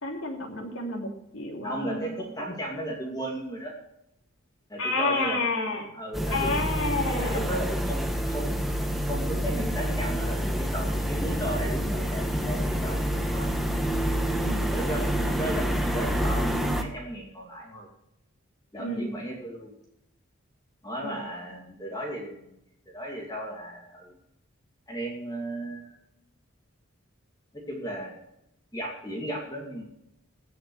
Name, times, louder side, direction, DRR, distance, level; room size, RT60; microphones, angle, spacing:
voice 1, 0.0-2.2 4.8-5.9 6.3-7.4 14.4-14.7 18.8-19.1 21.0-21.2, left 2 dB, 75° left, 0 dB, 3.1 m, -30 dB
voice 2, 1.6-3.7 4.7-5.5 5.9-6.6 7.2-13.5 14.7-17.9 18.7-19.7 20.8-22.6 22.9-24.1 24.9-26.0 27.5-28.1 28.7-29.8, right 1 dB, 20° left, -1 dB, 2.4 m, -35 dB
sound 1, 6.1-16.8, equal, ahead, 1.2 m, -27 dB
16.5 x 6.5 x 6.3 m, 0.83 s
head